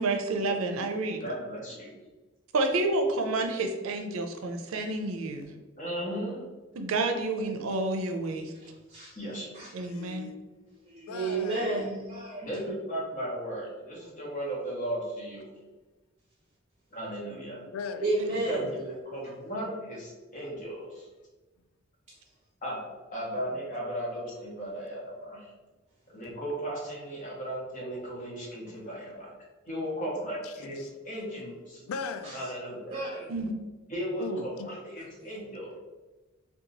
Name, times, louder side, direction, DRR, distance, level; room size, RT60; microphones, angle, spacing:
voice 1, 0.0-1.2 2.5-5.5 6.8-8.5 9.7-10.3 33.3-33.5, right 2 dB, 80° right, 0.5 m, -29 dB
voice 2, 1.2-1.9 5.8-6.4 9.2-9.5 12.4-15.5 16.9-17.6 18.5-21.1 22.6-25.4 26.1-29.3 29.7-31.8 32.3-33.0 33.9-35.7, right 1 dB, 40° left, 1.0 m, -36 dB
voice 3, 8.5-9.2 9.5-9.7 10.9-12.5 18.0-18.7 32.2-32.3 32.9-33.3 35.2-35.4, right 2 dB, 35° right, 0.6 m, -32 dB
voice 4, 9.8-11.9 17.3-18.0 27.8-27.9 28.5-28.8 30.4-30.9 31.4-32.4 34.2-34.7, left 5 dB, 85° left, 0.3 m, -40 dB
2.8 x 2.3 x 3.9 m
head